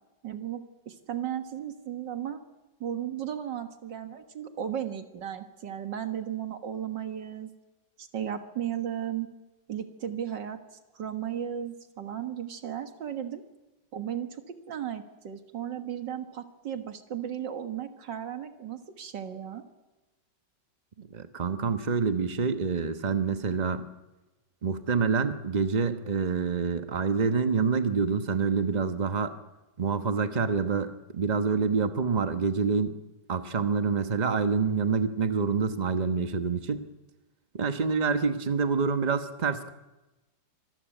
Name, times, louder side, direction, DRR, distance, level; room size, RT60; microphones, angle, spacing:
voice 1, 0.2-2.4 2.8-7.5 8.0-9.3 9.7-10.6 10.9-13.4 13.9-14.3 14.7-19.6, right 10 dB, 85° right, 7 dB, 2.2 m, -35 dB
voice 2, 21.0-23.8 24.6-29.3 29.8-32.9 33.3-36.9 37.5-39.7, right 5 dB, 30° right, 8 dB, 1.1 m, -27 dB
25.5 x 14.0 x 9.1 m, 1.1 s
omnidirectional pair, 1.9 m